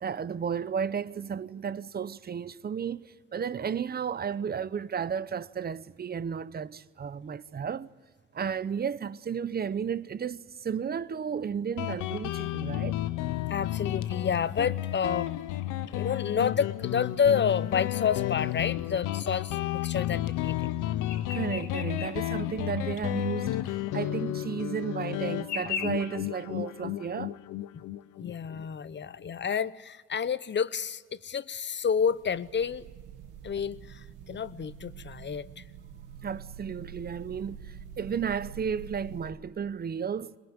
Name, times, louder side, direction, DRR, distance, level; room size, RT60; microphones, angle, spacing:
voice 1, 0.0-7.9 8.3-13.0 21.3-27.4 36.2-40.4, right 7 dB, 30° right, 0.7 m, -33 dB
Guitar, 11.8-29.0, left 14 dB, 85° left, 0.8 m, -32 dB
voice 2, 13.5-15.3 15.9-20.7 28.2-32.9 33.4-35.6, left 7 dB, 35° left, 0.8 m, -29 dB
sound 1, 21.1-22.2 22.5-22.6 23.4-23.5 24.5-24.6 25.4-25.9, left 7 dB, 70° left, 2.4 m, -35 dB
sound 2, 32.0-39.3, right 7 dB, 85° right, 1.3 m, -46 dB
22.5 x 21.0 x 9.7 m
cardioid pair, 90°, 30 cm